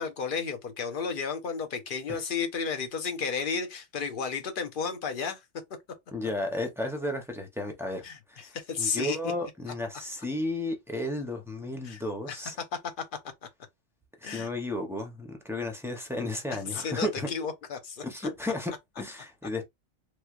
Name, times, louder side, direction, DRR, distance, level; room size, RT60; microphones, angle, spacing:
voice 1, 0.0-5.4 8.0-9.3 11.8-12.0 12.3-12.4 12.7-12.8 14.2-14.5 16.5-18.0, left 5 dB, 50° left, 0.8 m, -33 dB
voice 2, 6.1-8.0 8.3-12.6 14.2-17.3 18.0-19.6, left 1 dB, 5° right, 0.5 m, -33 dB
3.1 x 3.0 x 2.4 m
omnidirectional pair, 1.2 m